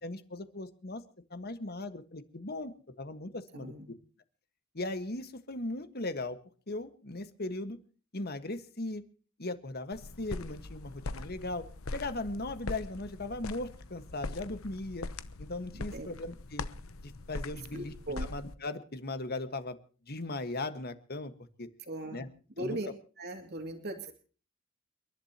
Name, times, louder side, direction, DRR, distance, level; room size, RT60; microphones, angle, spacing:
voice 1, 0.0-1.0 1.3-2.7 3.0-3.7 4.7-6.4 6.7-7.8 8.1-9.0 9.4-15.1 15.4-16.7 17.0-17.9 18.3-19.8 20.1-21.3 21.6-21.7 22.1-22.3 22.6-22.8, left 2 dB, 50° left, 10 dB, 1.5 m, -38 dB
voice 2, 3.5-4.0 15.7-16.1 17.7-18.3 21.8-22.3 22.6-22.9 23.2-24.1, right 1 dB, 50° right, 4 dB, 2.4 m, -39 dB
sound 1, 9.9-18.6, left 2 dB, 80° left, 0.9 m, -42 dB
30.0 x 11.5 x 2.9 m, 0.39 s
head